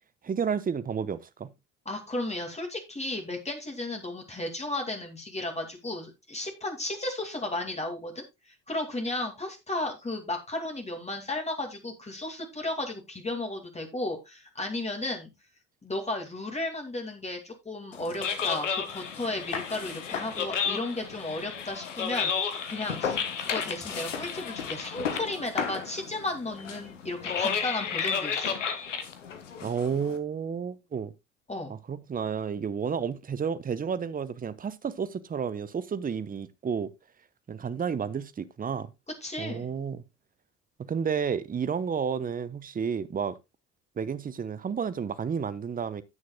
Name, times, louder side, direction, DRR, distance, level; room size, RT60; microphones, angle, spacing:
voice 1, 0.2-1.5 29.6-31.1 31.7-36.9 37.5-38.9 39.4-40.0 40.8-43.4 44.0-46.0, right 6 dB, 25° right, 1.0 m, -31 dB
voice 2, 1.9-15.3 15.8-28.6 31.5-31.7 39.2-39.7, left 2 dB, 20° left, 2.5 m, -34 dB
sound 1, 17.9-30.2, left 6 dB, 85° left, 1.2 m, -32 dB
17.0 x 6.3 x 2.3 m
figure-of-eight pair, 55°, 36 cm